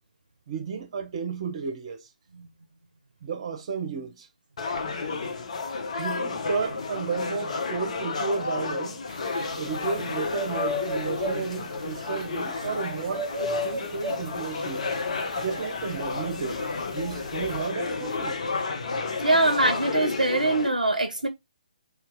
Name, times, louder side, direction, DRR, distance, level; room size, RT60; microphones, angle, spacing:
voice 1, 0.5-2.1 3.2-4.3 6.0-9.0 9.6-15.0 15.4-16.6 16.9-18.4, right 5 dB, 40° right, 0.8 m, -33 dB
sound 1, 4.6-20.7, left 4 dB, 50° left, 0.6 m, -32 dB
sound 2, 9.1-17.7, left 1 dB, 15° left, 1.2 m, -36 dB
voice 2, 19.2-21.3, right 2 dB, 80° right, 0.5 m, -23 dB
2.7 x 2.4 x 3.5 m
figure-of-eight pair, 135°, 4 cm